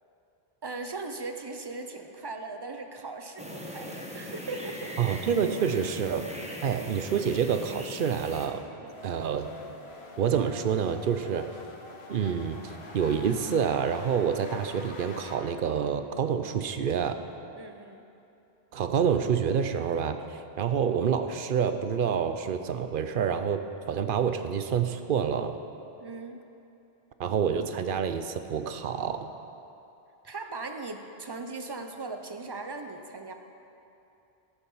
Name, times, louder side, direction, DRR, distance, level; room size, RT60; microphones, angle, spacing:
voice 1, 0.6-5.0 8.8-9.0 17.6-18.0 26.0-26.4 30.2-33.3, right 3 dB, 30° right, 5 dB, 0.6 m, -39 dB
sound 1, 3.4-8.5, equal, 5° right, 1.0 m, -39 dB
voice 2, 5.0-6.3 6.6-8.6 9.0-9.5 10.2-11.5 12.1-12.6 12.9-17.2 18.7-20.2 20.6-23.6 23.9-25.6 27.2-29.3, right 7 dB, 60° right, 9 dB, 0.7 m, -27 dB
sound 2, 8.9-15.4, left 3 dB, 80° left, 1.4 m, -45 dB
14.0 x 7.0 x 5.6 m, 2.8 s
omnidirectional pair, 1.1 m